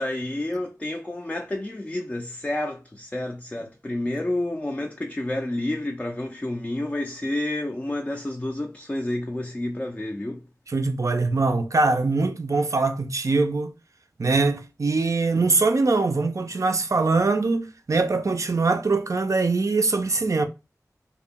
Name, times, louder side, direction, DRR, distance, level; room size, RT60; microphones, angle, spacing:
voice 1, 0.0-10.4, left 1 dB, 20° left, 0.3 m, -29 dB
voice 2, 10.7-13.7 14.2-20.5, right 3 dB, 55° right, 0.4 m, -22 dB
2.0 x 2.0 x 3.5 m
wide cardioid pair, 45°, 6 cm